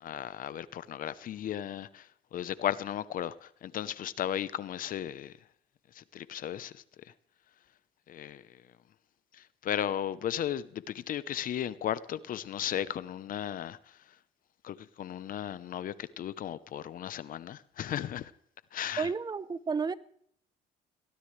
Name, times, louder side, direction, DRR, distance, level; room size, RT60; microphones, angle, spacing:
voice 1, 0.0-5.3 5.9-6.8 8.1-8.6 9.3-14.0 14.6-18.3 18.7-19.1, left 10 dB, 55° left, 0.9 m, -35 dB
voice 2, 19.0-19.9, right 5 dB, 25° right, 0.8 m, -31 dB
22.5 x 16.5 x 3.4 m
cardioid pair, 110°, 17 cm